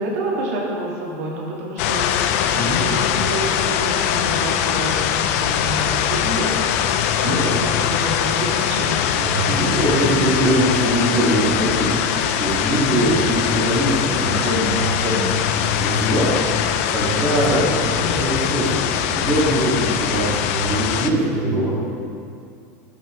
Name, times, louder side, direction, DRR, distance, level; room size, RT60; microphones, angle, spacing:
voice 1, 0.0-6.5 7.2-9.3 12.9-13.2 17.2-17.7, right 1 dB, 60° right, -2 dB, 1.8 m, -28 dB
sound 1, 1.8-21.1, left 9 dB, 55° left, 0.4 m, -22 dB
voice 2, 7.0-7.4 9.2-16.3 16.9-21.7, right 1 dB, 15° right, -12 dB, 1.8 m, -22 dB
10.5 x 5.8 x 3.6 m, 2.4 s
supercardioid pair, 175°, 9 cm